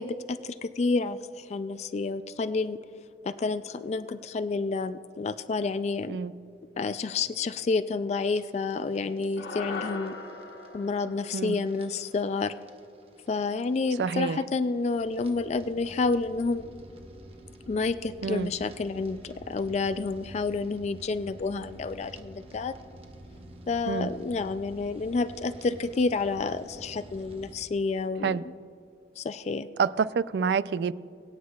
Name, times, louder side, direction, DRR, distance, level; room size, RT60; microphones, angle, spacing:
voice 1, 0.0-2.8 3.2-6.2 6.8-10.1 10.7-12.5 13.3-16.7 17.7-22.7 23.7-28.4 29.2-29.7, left 4 dB, 40° left, 12 dB, 0.3 m, -29 dB
sound 1, 8.2-27.5, right 1 dB, 35° right, 0.9 m, -49 dB
sound 2, 9.4-13.8, left 3 dB, 80° left, 0.9 m, -41 dB
voice 2, 14.0-14.4 18.2-18.5 23.9-24.1 28.2-28.4 29.8-30.9, right 6 dB, 70° right, 17 dB, 0.3 m, -27 dB
24.0 x 9.3 x 2.3 m, 2.3 s
head